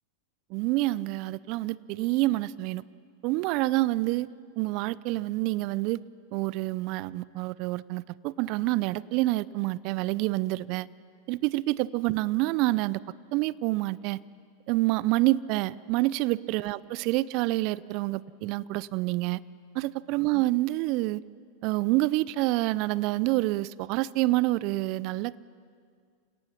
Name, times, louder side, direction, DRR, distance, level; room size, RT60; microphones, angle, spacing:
voice 1, 0.5-2.8 3.2-4.3 4.6-6.0 6.3-10.9 11.3-13.0 13.3-14.2 14.7-19.4 19.7-21.2 21.6-25.4, right 19 dB, 50° right, 21 dB, 0.5 m, -27 dB
29.5 x 18.0 x 5.9 m, 2.1 s
hypercardioid pair, 95°, 0 cm